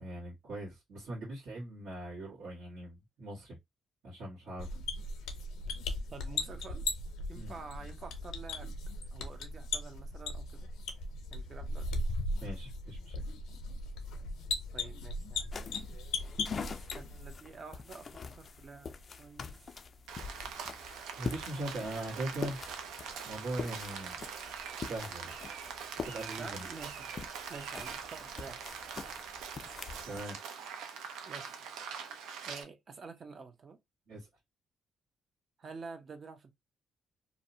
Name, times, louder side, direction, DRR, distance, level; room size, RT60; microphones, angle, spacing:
voice 1, 0.0-3.6 4.0-4.8 7.3-7.6 12.4-13.2 21.2-22.6 23.2-24.2 24.9-25.3 26.0-26.7 30.0-30.4 34.1-34.3, right 1 dB, 70° right, 1.3 m, -40 dB
sound 1, 4.6-17.4, left 2 dB, 85° left, 0.6 m, -38 dB
voice 2, 5.9-6.8 7.3-8.7 9.1-10.7 11.3-12.0 14.7-15.5 16.7-18.9 19.2-19.6 26.4-27.1 27.5-28.6 31.3-31.5 32.4-33.8 35.6-36.5, right 4 dB, 45° right, 0.6 m, -48 dB
sound 2, 15.5-30.2, left 5 dB, 45° left, 0.3 m, -45 dB
Rain, 20.1-32.6, right 6 dB, 90° right, 0.5 m, -43 dB
2.6 x 2.1 x 2.6 m
cardioid pair, 90°, 0 cm